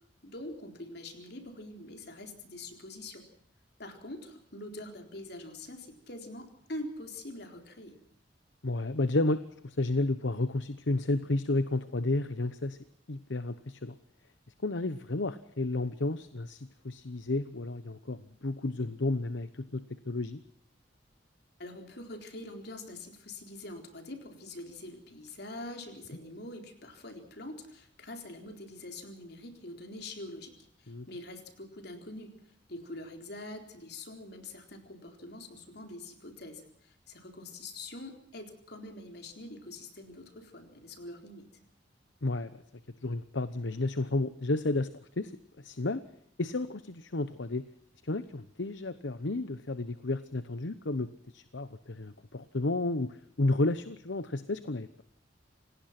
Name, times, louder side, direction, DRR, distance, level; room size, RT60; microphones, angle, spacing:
voice 1, 0.2-3.3 3.8-8.0 21.6-30.5 30.8-32.3 32.7-41.5, left 1 dB, 60° left, 4 dB, 4.1 m, -44 dB
voice 2, 8.6-12.8 13.1-14.0 14.6-20.4 30.9-31.1 42.2-42.6 43.0-44.9 45.2-45.3 45.6-46.0 46.4-47.6 48.0-55.0, left 2 dB, 75° left, 13 dB, 1.0 m, -32 dB
27.5 x 18.5 x 6.0 m, 0.69 s
head